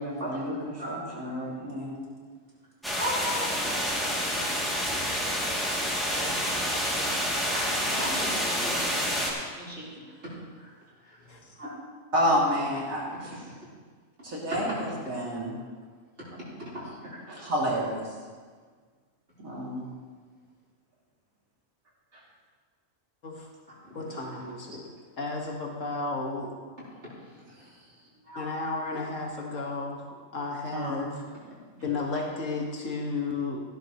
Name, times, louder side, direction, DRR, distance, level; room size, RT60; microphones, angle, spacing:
voice 1, 0.0-2.0 6.2-6.4 9.1-9.2 12.1-13.4 14.2-15.5 17.3-18.1 19.4-19.9 22.1-22.2 30.7-31.0, equal, 80° right, -5 dB, 3.2 m, -30 dB
voice 2, 0.8-1.8 2.9-3.7 6.5-6.6 7.3-9.0 9.6-10.1 10.6-10.7 11.0-11.2 11.6-11.8 14.6-14.7 16.7-17.4 23.9-24.6 27.3-27.4 28.2-28.5, equal, 55° right, -10 dB, 4.2 m, -38 dB
sound 1, 2.8-9.3, equal, ahead, 2.6 m, -28 dB
voice 3, 23.9-24.9 25.2-26.5 28.4-31.1 31.8-33.6, left 3 dB, 65° left, 0 dB, 2.1 m, -33 dB
16.0 x 11.5 x 3.1 m, 1.6 s
omnidirectional pair, 1.4 m